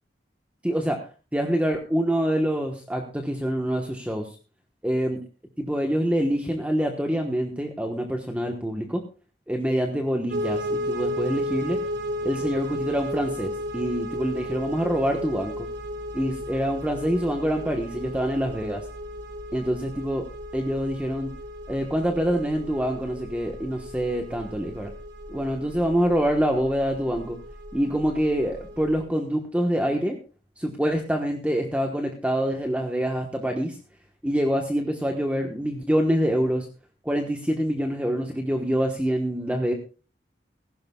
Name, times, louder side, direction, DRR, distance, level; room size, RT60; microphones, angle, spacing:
voice 1, 0.6-1.0 1.3-4.3 4.8-5.2 5.6-9.0 9.5-11.8 12.2-15.7 16.1-18.8 19.5-20.2 20.5-21.3 21.7-24.9 25.3-27.4 27.7-30.2 30.6-33.8 34.2-36.7 37.0-39.7, equal, 10° right, 2 dB, 1.2 m, -26 dB
sound 1, 10.3-29.0, equal, 80° right, 2.0 m, -34 dB
18.0 x 15.5 x 2.3 m, 0.35 s
head